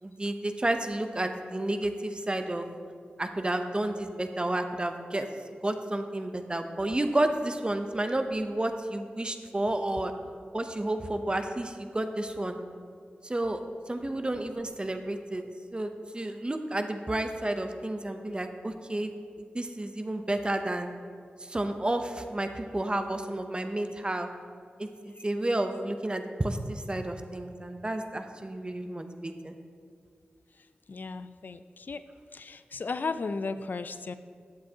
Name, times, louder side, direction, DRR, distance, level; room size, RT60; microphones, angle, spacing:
voice 1, 0.0-2.7 3.2-10.1 10.5-12.6 13.2-13.6 13.9-15.4 15.7-19.1 19.4-20.9 21.4-24.3 24.8-29.6, right 1 dB, 25° right, 6 dB, 0.6 m, -31 dB
voice 2, 30.6-32.0 32.3-34.1, left 4 dB, 60° left, 11 dB, 0.4 m, -35 dB
12.0 x 7.5 x 2.8 m, 2.1 s
cardioid pair, 45°, 4 cm